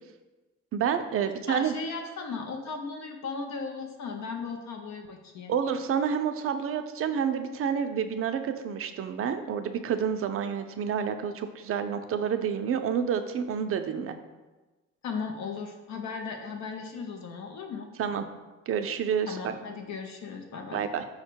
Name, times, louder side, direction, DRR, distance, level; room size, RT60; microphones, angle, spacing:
voice 1, 0.7-1.7 5.5-14.2 18.0-18.3 18.7-19.4 20.7-21.0, right 7 dB, 50° right, 8 dB, 0.4 m, -29 dB
voice 2, 1.5-5.5 15.0-17.9 19.3-20.9, left 4 dB, 65° left, 3 dB, 0.5 m, -36 dB
5.0 x 2.1 x 4.4 m, 1.2 s
cardioid pair, 90°, 30 cm